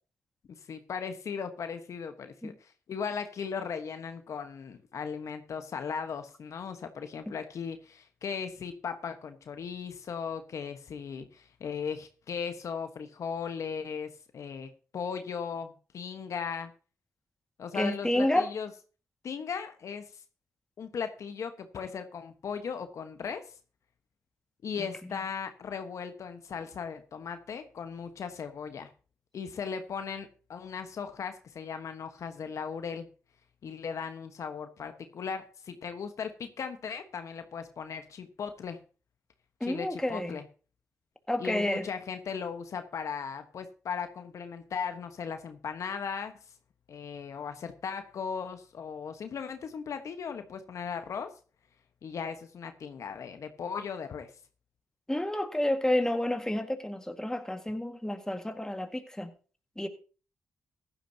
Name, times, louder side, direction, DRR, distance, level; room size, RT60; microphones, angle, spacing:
voice 1, 0.7-16.7 17.6-18.7 19.2-20.2 20.8-23.4 24.6-28.9 29.3-33.1 33.6-38.8 39.6-40.4 41.4-46.3 46.9-51.3 52.0-54.3, left 6 dB, 65° left, 1.3 m, -37 dB
voice 2, 17.7-18.5 39.6-40.4 41.3-41.9 55.1-59.3 59.8-59.9, left 1 dB, 10° left, 1.9 m, -30 dB
15.5 x 11.5 x 2.9 m
supercardioid pair, 50°, 6 cm